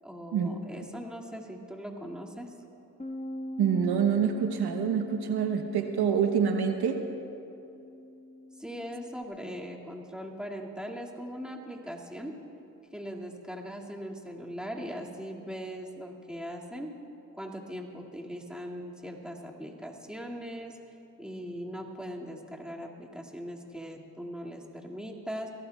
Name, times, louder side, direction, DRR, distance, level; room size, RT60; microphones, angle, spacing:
voice 1, 0.0-2.6 8.5-12.4 12.9-17.0 17.3-20.8 21.2-25.5, equal, ahead, -1 dB, 2.1 m, -40 dB
Bass guitar, 3.0-9.2, left 1 dB, 15° left, 0.9 m, -43 dB
voice 2, 3.6-7.1, right 7 dB, 75° right, 5 dB, 1.0 m, -26 dB
22.5 x 17.0 x 2.3 m, 2.9 s
supercardioid pair, 60°, 39 cm